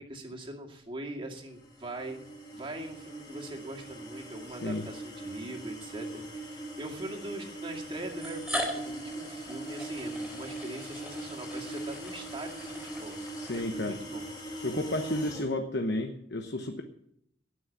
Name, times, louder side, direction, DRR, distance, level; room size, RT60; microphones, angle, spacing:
voice 1, 0.0-2.2 2.5-13.2 13.5-14.2, right 1 dB, 30° right, 1 dB, 2.2 m, -42 dB
sound 1, 1.6-15.5, right 2 dB, 20° left, 2.6 m, -41 dB
voice 2, 4.5-4.8 13.4-14.0 14.6-16.8, left 2 dB, 65° left, 5 dB, 1.1 m, -32 dB
sound 2, 5.8-5.9 7.1-7.2 8.1-14.1, equal, ahead, 3.9 m, -40 dB
19.0 x 6.3 x 8.3 m, 0.77 s
head